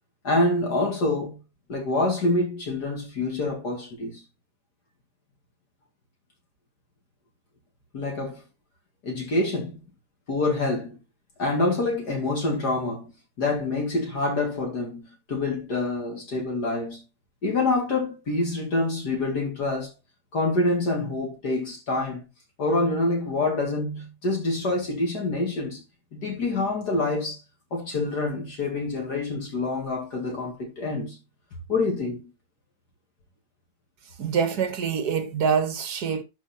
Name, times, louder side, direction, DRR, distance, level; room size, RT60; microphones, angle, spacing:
voice 1, 0.2-1.4 1.7-4.2 7.9-8.4 9.0-9.8 10.3-11.0 11.4-13.1 13.4-17.0 17.4-19.9 20.3-22.3 22.6-25.8 26.1-27.4 27.7-31.2 31.7-32.3, left 2 dB, 65° left, 2.8 m, -26 dB
voice 2, 34.2-36.2, right 6 dB, 65° right, 1.7 m, -25 dB
11.5 x 4.6 x 4.4 m
omnidirectional pair, 1.9 m